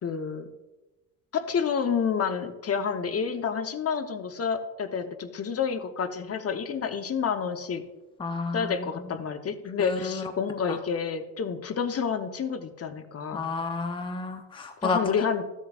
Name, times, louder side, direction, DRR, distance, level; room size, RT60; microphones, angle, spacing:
voice 1, 0.0-0.5 1.3-7.8 8.5-13.5 14.8-15.5, left 6 dB, 30° left, 8 dB, 1.0 m, -29 dB
voice 2, 8.2-8.9 9.8-10.3 10.7-10.8 13.3-15.0, left 4 dB, 10° left, 6 dB, 0.8 m, -31 dB
14.5 x 7.3 x 2.5 m, 1.0 s
hypercardioid pair, 75°, 45 cm